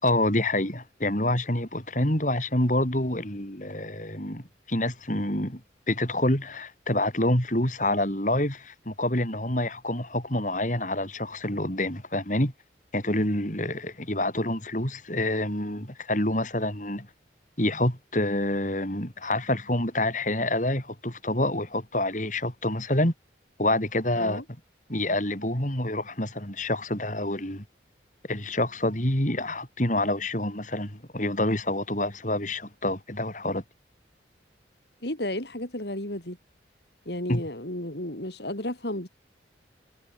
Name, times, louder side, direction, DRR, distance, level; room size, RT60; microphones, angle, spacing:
voice 1, 0.0-5.6 5.9-12.5 12.9-17.1 17.6-23.1 23.6-24.4 24.9-27.6 28.3-33.6 37.3-37.4, left 1 dB, 40° left, 5.9 m, -27 dB
voice 2, 35.0-36.4 37.0-39.1, left 1 dB, 60° left, 5.1 m, -33 dB
head